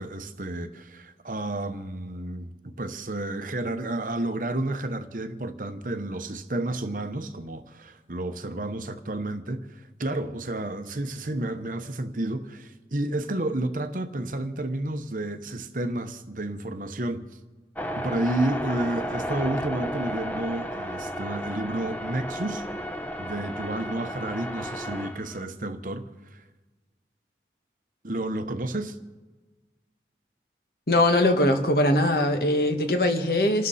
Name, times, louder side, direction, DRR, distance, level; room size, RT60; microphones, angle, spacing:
voice 1, 0.0-17.3 17.9-22.6 23.2-26.4 28.0-29.0, right 1 dB, 50° right, 1.0 m, -31 dB
sound 1, 17.8-25.4, equal, 10° left, 0.8 m, -33 dB
voice 2, 30.9-33.7, left 1 dB, 60° left, 1.7 m, -21 dB
28.0 x 12.0 x 4.2 m
head